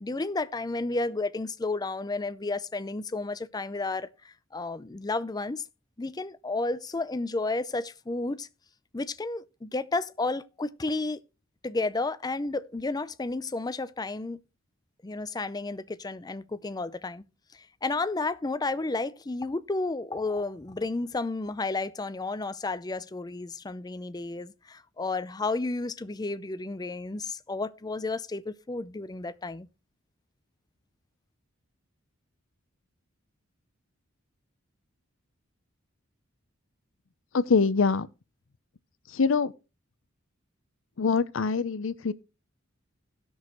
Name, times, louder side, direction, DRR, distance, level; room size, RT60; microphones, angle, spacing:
voice 1, 0.0-5.6 6.0-8.5 8.9-11.2 11.6-14.4 15.0-17.2 17.5-29.7, left 3 dB, 20° left, 0.5 m, -32 dB
voice 2, 37.3-38.1 39.1-39.5 41.0-42.1, left 5 dB, 65° left, 0.6 m, -24 dB
17.5 x 6.3 x 3.0 m
head